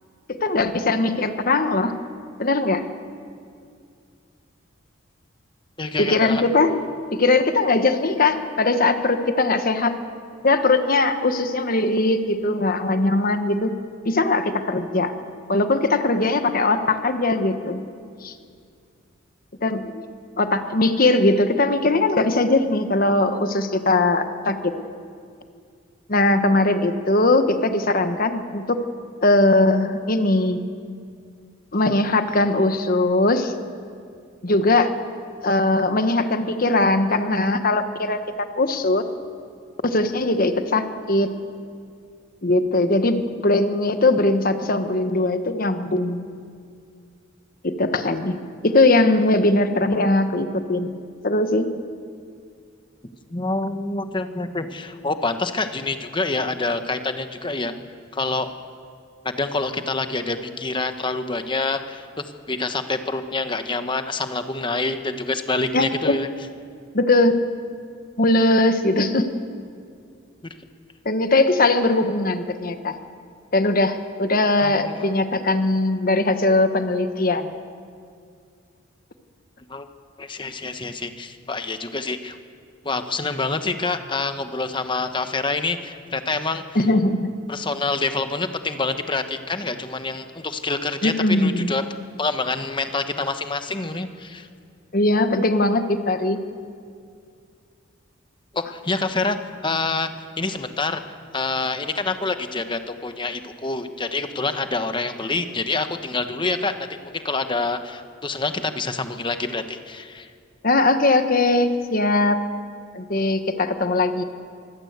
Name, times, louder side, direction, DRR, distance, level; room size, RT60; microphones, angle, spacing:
voice 1, 0.3-1.9 2.4-2.8 6.0-6.8 7.1-10.0 10.4-13.7 14.0-15.1 15.5-17.8 18.2-18.3 19.6-20.0 20.4-24.7 26.1-28.8 29.2-30.6 31.7-33.5 34.4-34.9 35.4-39.0 39.8-41.3 42.4-46.2 47.6-48.3 48.6-51.0 51.2-51.7 65.7-66.2 66.9-67.3 68.2-69.3 71.0-72.9 73.5-77.5 86.7-87.3 91.0-91.7 94.9-96.4 110.6-112.4 112.9-114.2, left 2 dB, 45° left, 8 dB, 1.2 m, -20 dB
voice 2, 5.8-6.4 53.3-57.7 58.1-58.5 59.2-62.1 62.5-66.3 70.4-70.5 74.6-75.1 79.7-79.9 80.2-82.4 82.8-86.6 87.5-91.8 92.2-94.5 98.5-99.4 99.6-100.1 100.4-101.0 101.3-110.3, left 3 dB, 25° left, 8 dB, 1.1 m, -26 dB
23.5 x 16.0 x 8.1 m, 2.3 s
head